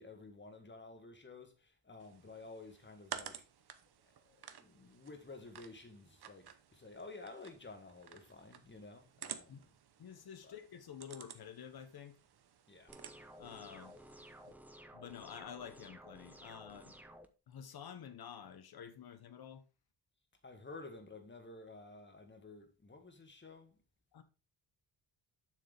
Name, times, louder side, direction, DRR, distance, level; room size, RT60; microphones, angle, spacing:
voice 1, 0.0-3.4 4.0-9.7 10.4-10.5 12.7-12.9 20.4-23.8, left 3 dB, 25° left, 1.8 m, -52 dB
sound 1, 2.0-14.5, right 9 dB, 60° right, 1.0 m, -53 dB
voice 2, 10.0-12.2 13.4-14.0 14.9-17.0 17.5-19.6 24.1-24.2, left 8 dB, 55° left, 1.1 m, -50 dB
sound 2, 12.9-17.3, equal, 5° right, 0.8 m, -55 dB
7.6 x 6.4 x 3.5 m
cardioid pair, 100°, 44 cm